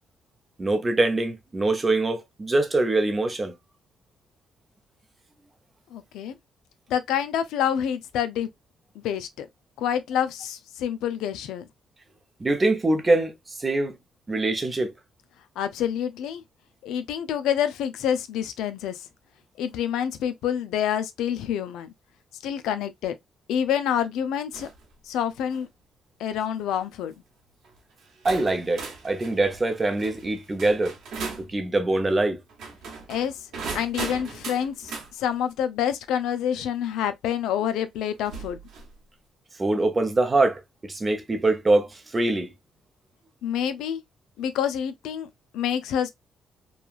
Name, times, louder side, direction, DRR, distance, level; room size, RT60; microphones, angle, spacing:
voice 1, 0.6-3.5 12.4-13.3 13.6-13.9 14.3-14.9 28.2-30.9 31.5-32.4 39.6-40.6 40.9-41.9 42.1-42.5, right 2 dB, 25° right, 0.7 m, -23 dB
voice 2, 5.9-6.4 6.9-8.5 9.0-9.5 9.8-11.7 15.6-16.4 16.8-19.0 19.6-21.9 22.4-23.2 23.5-24.7 25.1-25.7 26.2-27.1 33.1-33.3 33.7-38.6 43.4-44.0 44.4-45.3 45.5-46.1, left 9 dB, 90° left, 0.4 m, -27 dB
sound 1, 24.5-24.8 25.3-25.7 26.5-26.8 27.6-27.7 28.2-31.5 32.5-35.1 36.8-36.9 38.2-38.9, right 4 dB, 70° right, 1.1 m, -38 dB
3.0 x 2.3 x 2.3 m
cardioid pair, 90°, 0 cm